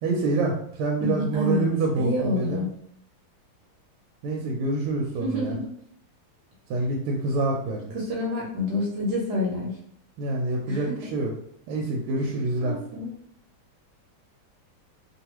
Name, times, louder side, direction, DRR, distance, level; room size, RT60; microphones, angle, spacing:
voice 1, 0.0-2.6 4.2-5.6 6.7-7.9 10.2-11.3 11.7-12.8, right 2 dB, 90° right, 0 dB, 1.5 m, -26 dB
voice 2, 1.0-1.7 1.9-2.7 5.2-5.6 7.9-9.7 10.7-11.0 12.2-12.3 12.6-13.1, left 1 dB, 60° right, -3 dB, 1.1 m, -28 dB
3.3 x 2.3 x 2.9 m, 0.66 s
omnidirectional pair, 2.3 m